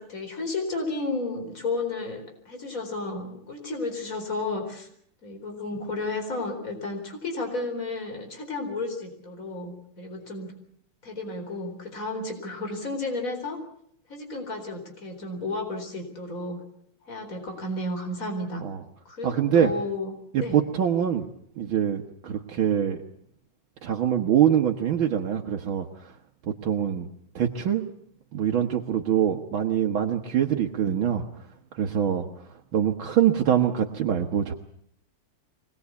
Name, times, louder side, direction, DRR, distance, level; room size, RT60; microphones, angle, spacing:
voice 1, 0.0-4.9 5.2-10.5 11.0-13.6 14.1-16.6 17.0-18.6 19.0-20.6, left 2 dB, 40° left, 5 dB, 4.6 m, -32 dB
voice 2, 19.2-19.7 20.3-21.3 21.6-23.0 23.8-26.1 26.5-27.1 27.4-27.9 28.3-31.2 31.7-32.3 32.7-34.5, right 9 dB, 70° right, 2 dB, 2.0 m, -24 dB
24.5 x 19.5 x 8.3 m, 0.68 s
omnidirectional pair, 2.3 m